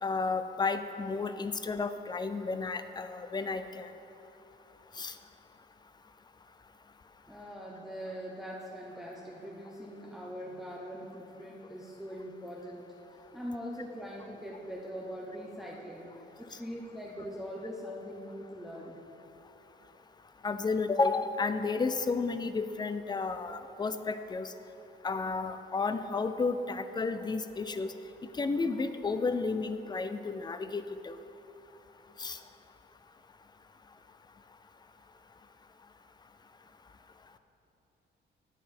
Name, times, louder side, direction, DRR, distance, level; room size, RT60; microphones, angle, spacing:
voice 1, 0.0-3.9 5.0-5.1 20.4-24.5 25.0-27.9 28.4-31.2 32.2-32.4, left 4 dB, 20° left, 10 dB, 0.4 m, -32 dB
voice 2, 7.3-16.1 16.4-19.0, equal, ahead, -4 dB, 0.8 m, -42 dB
9.5 x 5.3 x 4.4 m, 3.0 s
cardioid pair, 90°, 20 cm